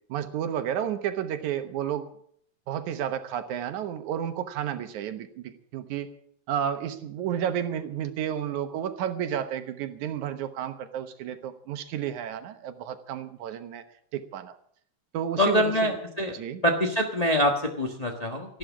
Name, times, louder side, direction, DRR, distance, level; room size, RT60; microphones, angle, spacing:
voice 1, 0.1-2.1 2.7-6.1 6.5-13.8 14.1-14.5 15.1-15.9 16.3-16.6, right 9 dB, 80° right, 9 dB, 2.5 m, -31 dB
voice 2, 15.4-16.3 16.6-18.6, equal, 45° left, 1 dB, 0.5 m, -25 dB
14.5 x 11.5 x 7.3 m, 0.66 s
omnidirectional pair, 3.4 m